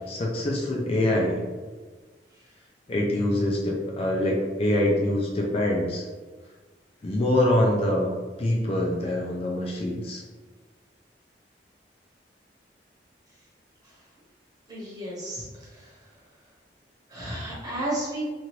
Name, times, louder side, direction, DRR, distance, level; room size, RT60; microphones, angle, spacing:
voice 1, 0.1-1.4 2.9-6.1 7.0-8.1 8.4-10.2, left 1 dB, 35° left, -1 dB, 0.4 m, -24 dB
voice 2, 14.7-15.9 17.1-18.2, right 1 dB, 20° right, -7 dB, 1.0 m, -33 dB
2.9 x 2.5 x 3.0 m, 1.3 s
head